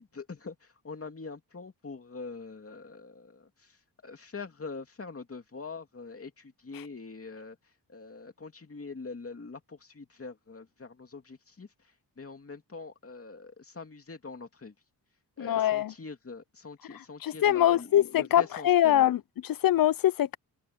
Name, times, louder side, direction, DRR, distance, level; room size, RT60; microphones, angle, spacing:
voice 1, 0.0-3.8 4.0-7.6 7.9-11.7 12.2-14.7 15.4-19.1, left 4 dB, 35° left, 2.7 m, -43 dB
voice 2, 15.4-15.9 17.2-20.4, left 12 dB, 55° left, 0.5 m, -24 dB
open air
wide cardioid pair, 115°, 41 cm